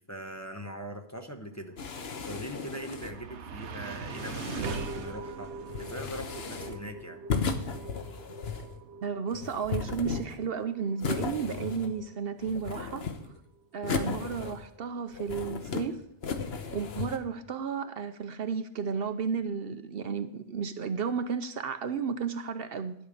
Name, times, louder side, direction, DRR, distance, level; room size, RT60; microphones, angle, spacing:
voice 1, 0.0-1.8 2.3-7.2, equal, 15° left, 4 dB, 0.8 m, -41 dB
sound 1, 1.8-3.3 4.0-5.2 5.7-6.9 7.3-8.8 9.3-10.5 11.0-12.1 12.4-13.4 13.8-14.8 15.1-15.9 16.2-17.2, left 5 dB, 65° left, 1.2 m, -35 dB
sound 2, 2.1-14.4, right 5 dB, 75° right, 1.1 m, -43 dB
voice 2, 9.0-13.0 13.7-16.0 16.7-23.0, right 6 dB, 60° right, 10 dB, 0.8 m, -33 dB
12.0 x 5.6 x 8.4 m, 0.74 s
omnidirectional pair, 1.2 m